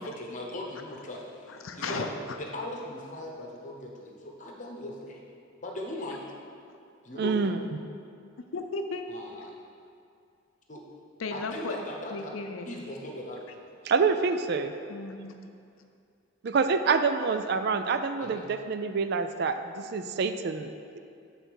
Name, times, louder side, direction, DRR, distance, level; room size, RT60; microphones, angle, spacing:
voice 1, 0.0-2.0 2.4-5.2 5.6-6.2 7.0-7.6 9.1-9.5 10.7-10.8 11.3-12.3 12.7-13.5 18.2-18.5, left 1 dB, 40° left, -1 dB, 1.0 m, -39 dB
voice 2, 1.5-2.4 6.7-6.8 8.5-9.1 11.2-11.7 12.1-12.7 14.9-15.4, left 3 dB, 85° left, 6 dB, 0.5 m, -35 dB
voice 3, 7.2-7.6 13.8-14.7 16.4-21.0, right 5 dB, 55° right, 9 dB, 0.4 m, -27 dB
8.0 x 4.0 x 6.3 m, 2.4 s
head